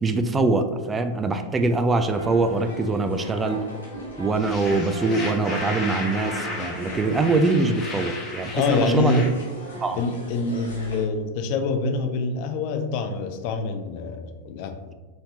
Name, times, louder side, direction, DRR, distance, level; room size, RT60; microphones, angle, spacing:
voice 1, 0.0-3.6 4.2-9.2 9.8-10.0, right 3 dB, 15° right, 8 dB, 0.3 m, -23 dB
sound 1, 1.9-7.2, right 1 dB, 80° right, 1.2 m, -40 dB
sound 2, 2.1-11.1, equal, 70° left, 0.9 m, -40 dB
sound 3, 4.4-9.3, left 2 dB, 25° left, 1.1 m, -34 dB
voice 2, 8.5-9.3 10.0-14.8, left 3 dB, 45° left, 6 dB, 0.4 m, -25 dB
4.1 x 3.3 x 2.8 m, 1.3 s
figure-of-eight pair, 90°, 0 cm